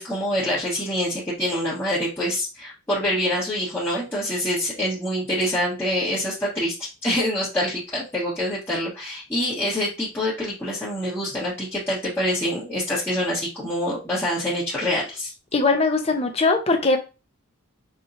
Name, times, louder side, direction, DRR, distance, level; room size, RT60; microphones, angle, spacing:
voice 1, 0.0-15.3, equal, 10° left, 1.2 m, -26 dB
voice 2, 15.5-17.0, left 3 dB, 30° left, 0.7 m, -20 dB
5.3 x 3.0 x 2.6 m
head